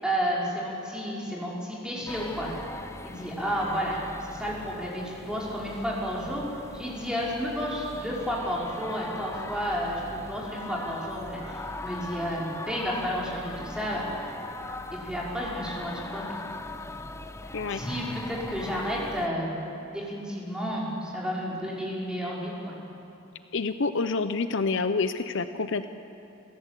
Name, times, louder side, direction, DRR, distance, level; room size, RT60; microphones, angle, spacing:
voice 1, 0.0-2.5 3.0-4.0 4.3-6.4 6.7-14.1 14.9-16.4 17.7-19.5 19.9-22.7, equal, 5° right, -5 dB, 4.9 m, -31 dB
sound 1, 2.1-19.3, left 2 dB, 15° left, 0.7 m, -40 dB
voice 2, 23.5-25.9, left 4 dB, 65° left, 10 dB, 0.7 m, -28 dB
29.0 x 15.0 x 8.3 m, 2.8 s
head